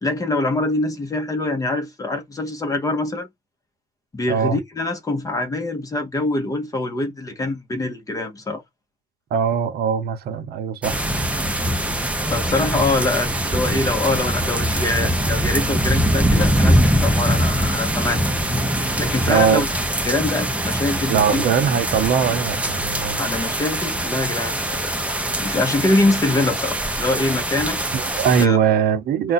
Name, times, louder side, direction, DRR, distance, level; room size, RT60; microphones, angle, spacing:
voice 1, 0.0-3.3 4.1-8.6 12.3-18.3 19.0-19.7 20.0-21.4 23.2-24.9 25.4-27.8 28.4-28.6, left 2 dB, 20° left, 0.8 m, -24 dB
voice 2, 4.3-4.6 9.3-11.0 19.3-19.6 21.1-23.3 27.9-29.3, right 7 dB, 65° right, 0.7 m, -20 dB
sound 1, 10.8-28.5, right 1 dB, 10° right, 0.7 m, -22 dB
2.5 x 2.2 x 3.9 m
cardioid pair, 110°, 17 cm